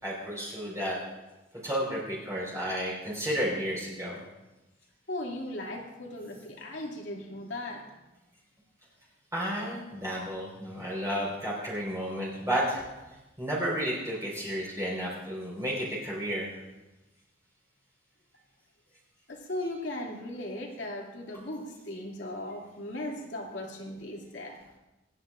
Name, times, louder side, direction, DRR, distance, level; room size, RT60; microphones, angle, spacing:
voice 1, 0.0-1.0 1.6-4.2 9.3-12.8 13.4-16.6, equal, 15° right, -6 dB, 4.3 m, -32 dB
voice 2, 5.1-7.9 19.3-24.6, left 1 dB, 75° left, -1 dB, 2.6 m, -37 dB
26.0 x 10.0 x 2.5 m, 1.1 s
head